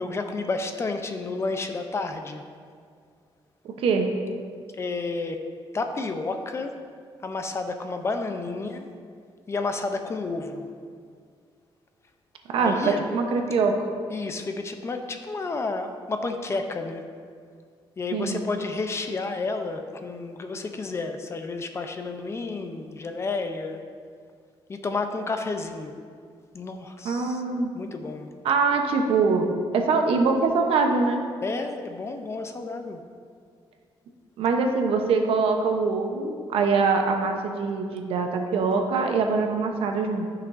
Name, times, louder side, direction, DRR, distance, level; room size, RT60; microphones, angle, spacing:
voice 1, 0.0-2.4 4.8-5.4 5.7-6.7 7.2-8.9 9.5-10.7 12.6-13.0 14.1-17.0 18.0-23.8 24.7-25.9 26.5-27.4 27.7-28.3 31.4-33.0, left 3 dB, 30° left, 6 dB, 0.6 m, -31 dB
voice 2, 3.6-4.1 12.5-13.9 18.1-18.4 27.0-27.7 28.4-31.3 34.4-40.3, right 4 dB, 80° right, 3 dB, 0.8 m, -23 dB
12.5 x 5.9 x 2.6 m, 2.1 s
cardioid pair, 135°, 9 cm